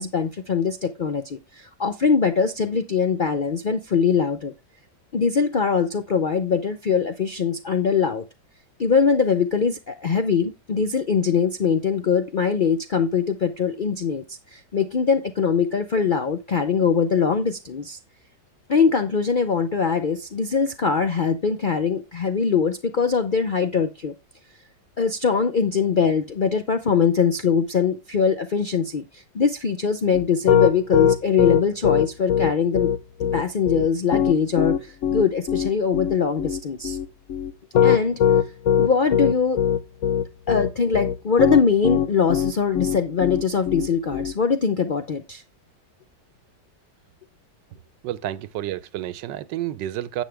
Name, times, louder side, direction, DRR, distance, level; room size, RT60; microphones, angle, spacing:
voice 1, 0.0-4.5 5.1-8.2 8.8-18.0 18.7-24.1 25.0-32.9 33.3-37.0 37.8-38.2 38.8-39.6 40.5-45.4, left 6 dB, 85° left, 0.4 m, -22 dB
Piano, 30.1-44.3, left 8 dB, 60° left, 0.9 m, -21 dB
voice 2, 48.0-50.2, right 13 dB, 85° right, 1.3 m, -30 dB
10.5 x 7.3 x 3.4 m
omnidirectional pair, 1.9 m